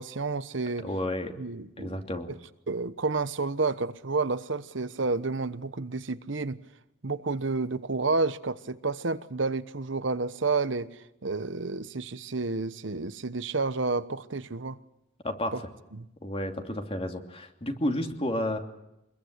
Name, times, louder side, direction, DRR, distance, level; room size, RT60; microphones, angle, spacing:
voice 1, 0.0-0.9 1.4-2.0 2.7-6.6 7.0-10.9 11.2-14.8 15.5-15.6 15.9-16.1, right 3 dB, 75° right, 1.1 m, -30 dB
voice 2, 0.8-1.3 1.8-2.3 15.2-15.5 16.2-18.6, left 1 dB, 30° left, 2.8 m, -31 dB
25.0 x 22.0 x 8.2 m
head